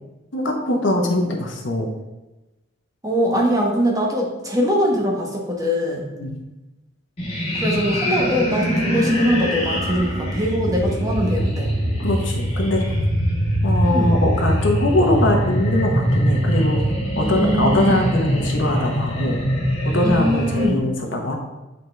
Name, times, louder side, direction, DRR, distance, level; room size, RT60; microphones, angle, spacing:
voice 1, 0.3-1.9 6.1-6.4 12.0-12.8 13.6-16.8 17.2-19.5 19.8-21.4, left 1 dB, 65° left, 2 dB, 1.0 m, -22 dB
voice 2, 3.0-6.1 7.5-11.7 13.9-14.1 17.2-17.9 20.0-20.7, equal, 20° right, -1 dB, 1.0 m, -22 dB
sound 1, 7.2-20.7, equal, 30° left, 1.4 m, -22 dB
8.1 x 4.0 x 3.4 m, 1.1 s
head